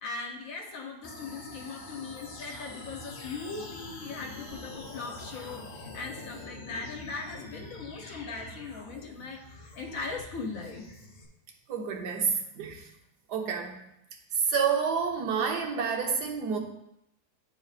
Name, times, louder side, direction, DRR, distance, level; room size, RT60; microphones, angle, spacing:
voice 1, 0.0-9.4 9.7-10.8, left 4 dB, 60° left, 1.3 m, -39 dB
sound 1, 1.0-11.3, left 2 dB, 45° left, 0.6 m, -45 dB
voice 2, 11.7-12.9 13.3-13.9 14.3-16.6, right 6 dB, 85° right, 1.4 m, -29 dB
10.0 x 3.8 x 2.4 m
omnidirectional pair, 1.7 m